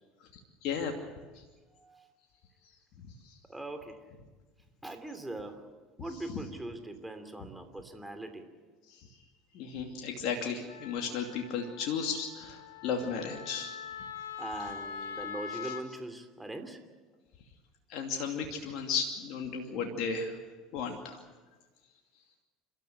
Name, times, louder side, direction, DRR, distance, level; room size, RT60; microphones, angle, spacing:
voice 1, 0.6-0.9 3.0-3.1 9.5-13.7 17.9-20.3 20.7-21.2, left 6 dB, 60° left, 2 dB, 2.6 m, -34 dB
voice 2, 1.8-2.1 3.5-4.0 4.8-5.6 6.0-8.4 14.4-16.8, right 2 dB, 10° right, 7 dB, 3.0 m, -41 dB
Wind instrument woodwind instrument, 10.7-15.9, left 7 dB, 80° left, 1.5 m, -43 dB
29.5 x 13.5 x 8.1 m, 1.3 s
hypercardioid pair, 75°, 0 cm